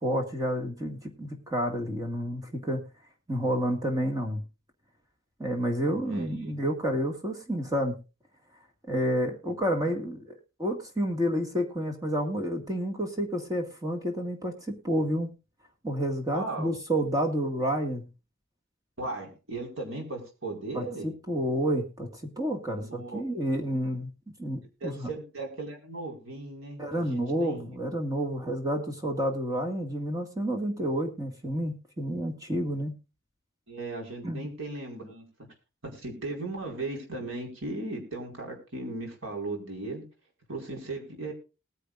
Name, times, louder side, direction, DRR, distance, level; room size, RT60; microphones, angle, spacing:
voice 1, 0.0-2.9 3.3-4.4 5.4-8.0 8.9-15.3 15.8-18.1 20.7-24.1 24.4-25.1 26.8-32.9 34.2-34.5, equal, 15° right, 3 dB, 2.0 m, -30 dB
voice 2, 6.0-6.5 16.3-16.7 19.0-21.1 22.7-23.2 24.8-27.7 33.7-35.2 35.8-40.0 40.5-41.3, right 2 dB, 70° right, 2 dB, 4.8 m, -37 dB
19.5 x 10.0 x 2.5 m, 0.30 s
head